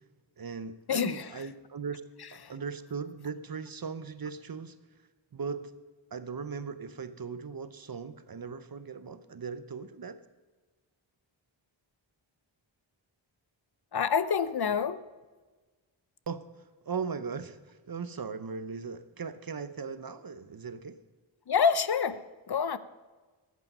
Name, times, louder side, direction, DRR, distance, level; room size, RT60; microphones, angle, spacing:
voice 1, 0.4-2.0 2.3-4.8 5.3-5.7 6.1-10.2 16.3-16.4 16.8-21.0, right 5 dB, 45° right, 12 dB, 0.8 m, -38 dB
voice 2, 0.9-1.5 2.4-2.5 13.9-15.0 21.5-22.8, left 6 dB, 55° left, 14 dB, 0.6 m, -27 dB
15.0 x 8.4 x 5.5 m, 1.3 s
wide cardioid pair, 95°, 48 cm